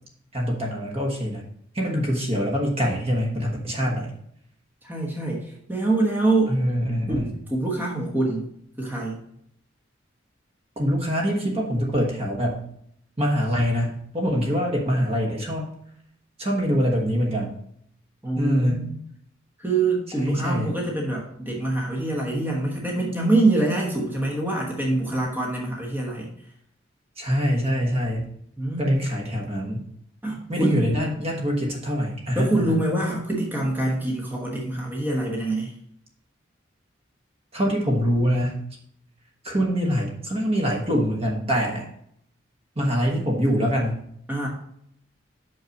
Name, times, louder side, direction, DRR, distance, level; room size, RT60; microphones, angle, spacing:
voice 1, 0.3-1.5 1.7-4.1 6.5-7.3 10.8-12.7 13.2-15.7 16.4-17.5 18.4-18.9 20.2-20.7 27.2-28.3 28.8-29.9 30.5-32.6 37.5-38.6 39.4-41.9 42.7-44.0, equal, 30° right, -1 dB, 1.3 m, -24 dB
voice 2, 4.8-6.6 7.1-8.5 8.8-9.2 18.2-18.9 19.6-26.3 28.6-29.0 30.2-30.8 32.3-35.7 44.3-44.5, right 2 dB, 10° right, -3 dB, 1.2 m, -25 dB
5.8 x 5.5 x 5.2 m, 0.69 s
head